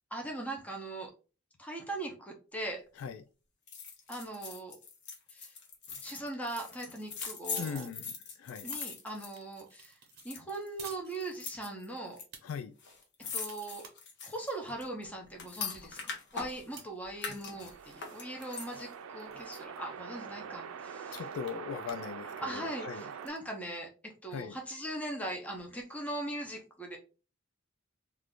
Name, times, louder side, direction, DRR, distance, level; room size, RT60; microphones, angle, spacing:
voice 1, 0.1-1.1 1.6-2.8 4.1-4.8 5.3-5.6 6.0-7.9 8.6-10.0 10.2-12.2 13.2-13.9 14.2-21.2 22.4-27.0, right 1 dB, 5° left, 0.5 m, -40 dB
sound 1, 3.7-9.8 10.1-10.7 11.2-12.2 12.5-12.6 12.8-16.8 17.2-18.9 19.3-19.4, left 5 dB, 60° left, 0.7 m, -42 dB
sound 2, 6.1-6.7 7.0-7.3 7.6-7.9 8.3-11.7 12.1-12.4 12.9-14.9 15.4-15.5 15.8-17.5 17.8-18.0 18.4-18.5 18.7-18.8 19.2-19.8 20.4-20.5 20.7-22.1 22.4-23.4, right 6 dB, 50° right, 0.7 m, -52 dB
voice 2, 7.6-8.7 12.4-12.7 21.1-23.1 24.3-24.6, left 6 dB, 75° left, 0.3 m, -40 dB
sound 3, 17.5-23.3, right 7 dB, 85° right, 0.3 m, -44 dB
2.4 x 2.4 x 3.5 m
head